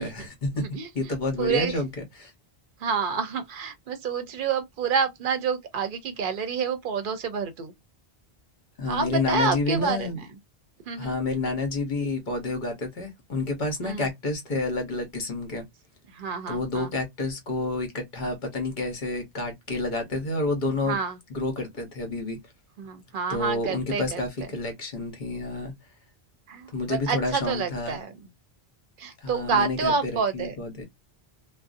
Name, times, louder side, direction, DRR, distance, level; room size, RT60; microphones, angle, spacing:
voice 1, 0.0-0.6 0.9-1.9 2.1-2.3 8.8-10.2 11.0-15.6 16.5-21.0 21.3-22.4 23.3-25.7 26.7-28.0 29.2-30.9, left 2 dB, 50° left, 1.0 m, -29 dB
voice 2, 1.4-1.8 2.8-7.7 8.9-10.1 10.9-11.2 13.8-14.1 16.1-16.9 20.9-21.2 22.8-24.2 26.5-28.1 29.0-30.5, right 6 dB, 60° right, 0.7 m, -28 dB
2.5 x 2.1 x 2.5 m
omnidirectional pair, 1.0 m